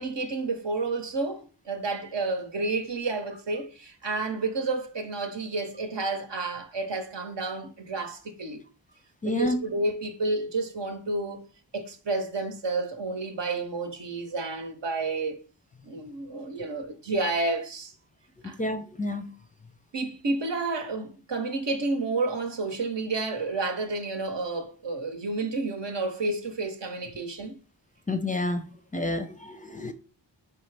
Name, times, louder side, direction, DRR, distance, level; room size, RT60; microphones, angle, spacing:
voice 1, 0.0-8.6 9.2-11.4 11.7-15.4 15.9-17.9 18.4-18.6 19.9-27.5, right 3 dB, 75° right, 0.8 m, -30 dB
voice 2, 9.2-9.6 16.6-16.7 18.4-19.3 28.1-29.9, left 1 dB, 20° left, 0.4 m, -30 dB
4.2 x 3.4 x 3.2 m
cardioid pair, 40°, 43 cm